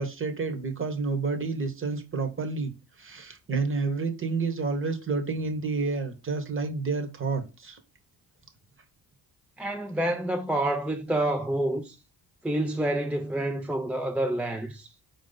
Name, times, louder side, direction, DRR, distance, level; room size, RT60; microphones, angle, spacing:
voice 1, 0.0-2.7 3.0-7.8, right 4 dB, 30° right, 1.0 m, -29 dB
voice 2, 9.6-12.0 12.4-14.9, right 1 dB, 5° right, 0.4 m, -28 dB
4.4 x 2.6 x 3.9 m
supercardioid pair, 70°, 40 cm